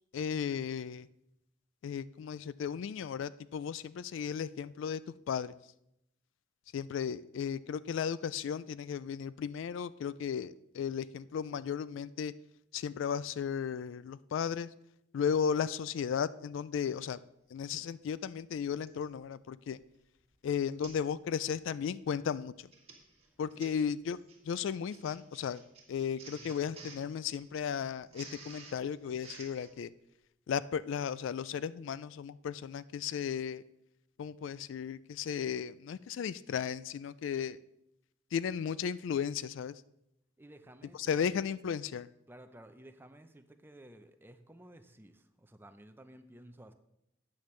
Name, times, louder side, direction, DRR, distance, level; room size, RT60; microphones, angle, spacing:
voice 1, 0.1-1.1 1.8-5.0 5.3-5.5 6.7-12.3 12.7-14.7 15.1-17.2 17.5-19.8 20.4-22.7 23.4-24.2 24.4-25.6 25.9-29.9 30.5-33.6 34.2-37.6 38.3-39.8 41.0-42.1, left 7 dB, 65° left, 17 dB, 0.3 m, -35 dB
Printer, 18.9-19.1 19.7-20.0 20.2-20.3 20.8-21.1 21.4-21.7 22.5-29.7, right 4 dB, 30° right, 2.0 m, -53 dB
voice 2, 40.4-41.2 42.3-46.7, right 1 dB, 10° right, 8 dB, 0.5 m, -54 dB
12.5 x 8.6 x 3.2 m, 0.81 s
head